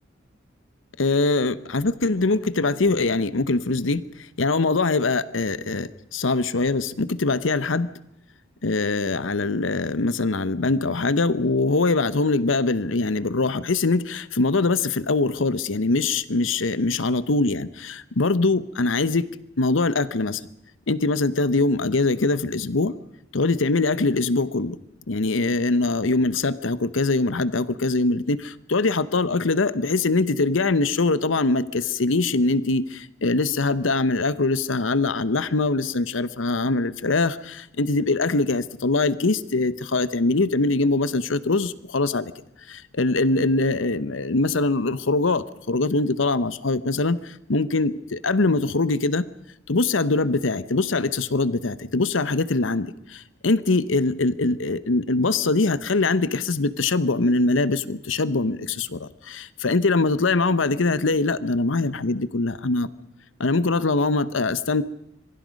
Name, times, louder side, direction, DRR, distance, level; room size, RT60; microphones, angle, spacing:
voice 1, 1.0-7.9 8.6-19.3 19.6-20.5 20.9-22.9 23.3-24.8 25.1-42.3 42.7-49.3 49.7-62.9 63.4-64.8, left 3 dB, 80° left, 16 dB, 0.9 m, -23 dB
26.0 x 23.0 x 5.3 m, 0.82 s
head